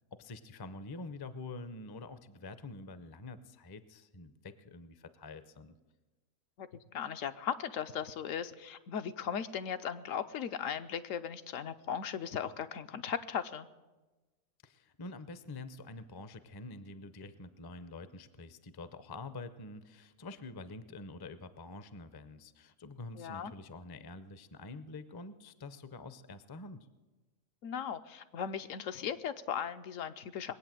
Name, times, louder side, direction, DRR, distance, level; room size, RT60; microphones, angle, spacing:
voice 1, 0.1-5.8 14.6-26.9, left 3 dB, 30° left, 12 dB, 0.4 m, -47 dB
voice 2, 6.6-13.7 23.1-23.5 27.6-30.5, left 8 dB, 75° left, 10 dB, 1.0 m, -37 dB
20.5 x 8.6 x 7.5 m, 1.2 s
omnidirectional pair, 1.4 m